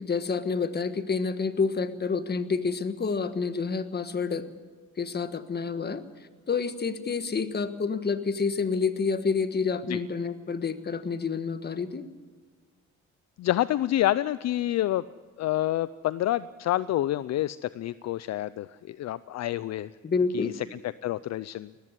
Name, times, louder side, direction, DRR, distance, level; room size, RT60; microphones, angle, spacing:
voice 1, 0.0-4.5 5.0-6.0 6.5-12.0 20.0-20.5, left 5 dB, 35° left, 10 dB, 1.5 m, -28 dB
voice 2, 13.4-15.1 15.4-19.9 20.3-21.7, left 14 dB, 60° left, 17 dB, 0.5 m, -28 dB
19.0 x 15.0 x 9.8 m, 1.5 s
cardioid pair, 90°, 30 cm